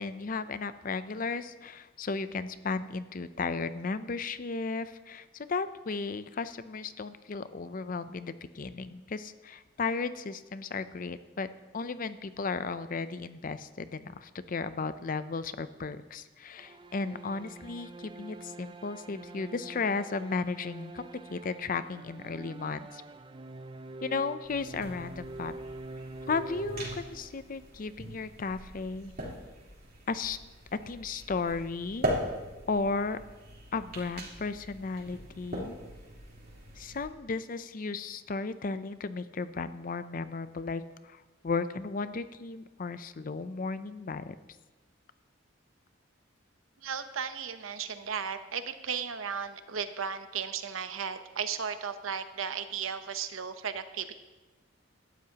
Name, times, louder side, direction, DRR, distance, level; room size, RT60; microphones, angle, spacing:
voice 1, 0.0-11.5 11.7-23.0 24.0-25.5 26.3-29.1 30.1-30.4 30.9-32.1 32.7-33.2 33.7-35.8 36.8-44.3, left 4 dB, 45° left, 13 dB, 0.5 m, -35 dB
sound 1, 16.6-27.7, right 2 dB, 25° right, 0.4 m, -45 dB
sound 2, 24.4-37.1, right 1 dB, 50° right, 3.5 m, -40 dB
voice 2, 46.8-54.2, right 7 dB, 90° right, 9 dB, 0.8 m, -35 dB
17.5 x 12.5 x 2.9 m, 1.2 s
head